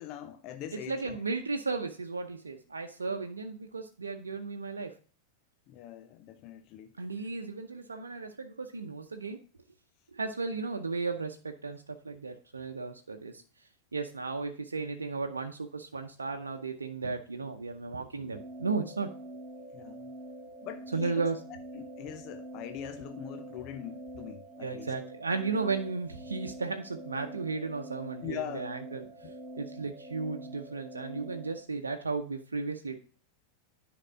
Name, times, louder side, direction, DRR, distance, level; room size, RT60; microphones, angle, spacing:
voice 1, 0.0-1.2 3.1-3.2 5.7-6.9 19.7-20.1 20.6-21.3 21.7-25.0 28.2-28.7, left 10 dB, 40° left, 0.6 m, -42 dB
voice 2, 0.7-4.9 7.0-9.4 10.1-13.4 13.9-19.1 20.9-21.4 24.6-33.0, right 4 dB, 75° right, 0.7 m, -35 dB
sound 1, 18.3-31.6, right 1 dB, ahead, 1.5 m, -45 dB
9.9 x 5.2 x 3.6 m
figure-of-eight pair, 90°, 0 cm